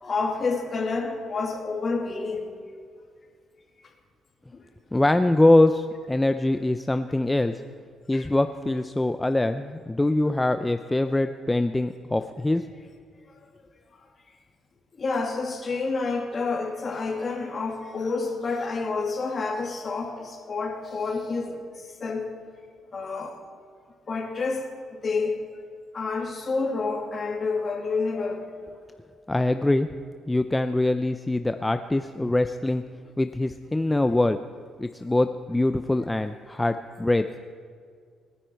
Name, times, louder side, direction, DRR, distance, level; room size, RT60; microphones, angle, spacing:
voice 1, 0.0-2.5 4.5-4.6 8.1-8.3 15.0-22.3 22.9-23.3 24.1-25.4 25.9-28.5, left 4 dB, 40° left, 2 dB, 2.7 m, -29 dB
voice 2, 4.9-7.6 8.1-12.6 29.3-29.9 30.3-32.8 33.2-34.4 34.8-37.4, left 2 dB, 10° left, 9 dB, 0.5 m, -23 dB
27.5 x 9.9 x 4.6 m, 2.1 s
cardioid pair, 90°, 0 cm